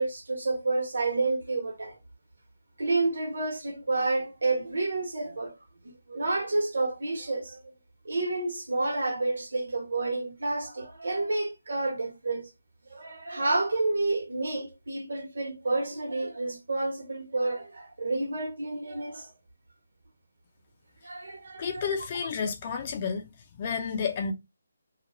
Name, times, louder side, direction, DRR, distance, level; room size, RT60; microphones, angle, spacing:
voice 1, 0.0-2.0 2.8-5.5 5.8-7.7 8.0-12.5 12.9-19.3 21.0-21.9, right 2 dB, 80° right, 1.0 m, -30 dB
voice 2, 21.6-23.3 23.6-24.3, left 6 dB, 30° left, 0.5 m, -31 dB
2.3 x 2.2 x 2.9 m
hypercardioid pair, 165°, 0 cm